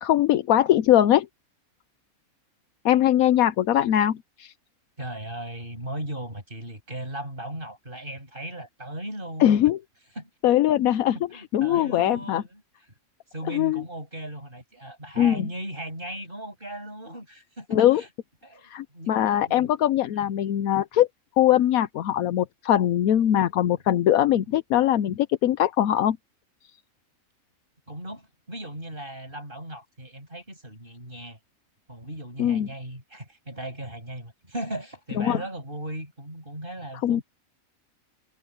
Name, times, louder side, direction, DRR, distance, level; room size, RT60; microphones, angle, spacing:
voice 1, 0.0-1.3 2.8-4.5 9.4-9.8 10.4-11.2 11.5-12.4 13.5-13.8 15.2-15.5 17.7-18.0 18.7-21.1 21.4-26.2 32.4-32.7 35.2-35.4 37.0-37.2, left 12 dB, 80° left, 1.1 m, -21 dB
voice 2, 5.0-9.6 10.2-10.3 11.1-12.6 13.3-18.1 18.4-19.2 19.5-19.6 20.1-20.3 27.9-31.4 31.9-37.2, right 1 dB, 35° right, 8.2 m, -37 dB
omnidirectional pair, 1.5 m